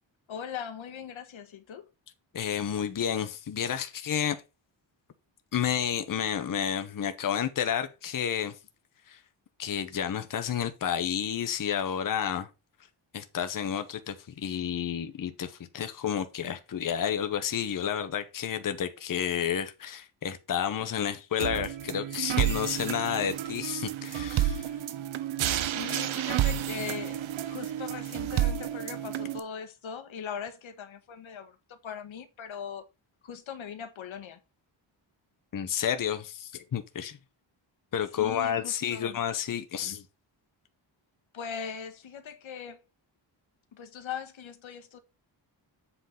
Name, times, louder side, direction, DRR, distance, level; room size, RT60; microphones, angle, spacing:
voice 1, 0.3-1.9 25.6-32.8 33.2-34.4 38.1-39.2 41.3-42.8 43.7-45.0, left 7 dB, 80° left, 1.2 m, -40 dB
voice 2, 2.3-4.4 5.5-8.5 9.1-9.2 9.6-12.5 13.1-24.7 35.5-37.2 37.9-40.0, left 9 dB, 45° left, 0.9 m, -30 dB
sound 1, 21.4-29.4, right 11 dB, 80° right, 0.8 m, -30 dB
8.0 x 3.9 x 5.6 m
wide cardioid pair, 135°, 47 cm